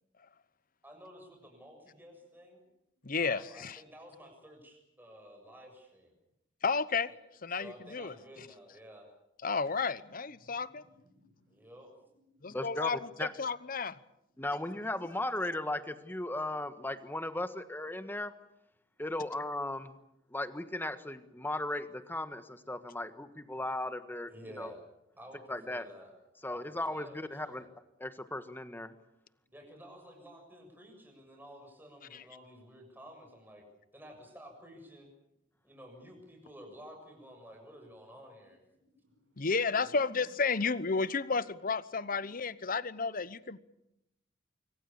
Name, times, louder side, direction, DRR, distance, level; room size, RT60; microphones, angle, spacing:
voice 1, 0.8-2.6 3.1-6.1 7.1-7.2 7.5-9.1 11.5-11.9 24.3-24.8 25.2-26.1 26.4-27.1 27.4-27.7 29.5-33.6 33.9-35.1 35.6-38.6, equal, 10° right, 2 dB, 7.0 m, -52 dB
voice 2, 3.0-3.8 6.6-7.1 7.4-8.5 9.4-10.8 12.4-13.0 13.4-14.0 32.1-32.2 39.4-43.6, left 4 dB, 45° left, 16 dB, 0.9 m, -32 dB
voice 3, 10.6-11.7 12.3-12.5 38.8-39.4 39.7-40.1 42.2-42.4, equal, 70° right, -2 dB, 6.9 m, -62 dB
voice 4, 12.5-12.9 13.2-13.3 14.4-18.3 19.0-20.0 20.3-24.3 24.6-24.7 25.5-25.9 26.4-27.6 28.0-28.9, left 1 dB, 10° left, 10 dB, 1.4 m, -36 dB
25.5 x 24.5 x 7.1 m, 0.84 s
head